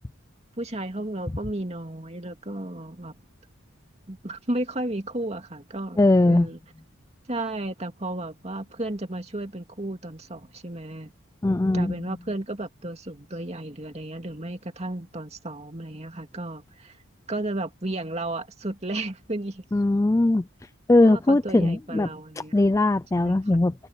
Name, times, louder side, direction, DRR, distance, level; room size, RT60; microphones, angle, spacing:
voice 1, 0.6-3.1 4.1-6.6 7.3-11.1 11.7-17.0 17.3-19.6 21.0-22.6 23.2-23.4, right 1 dB, 30° right, 2.4 m, -33 dB
voice 2, 6.0-6.5 11.4-12.0 19.7-20.5 20.9-22.1 22.5-23.7, left 2 dB, 15° left, 0.3 m, -20 dB
head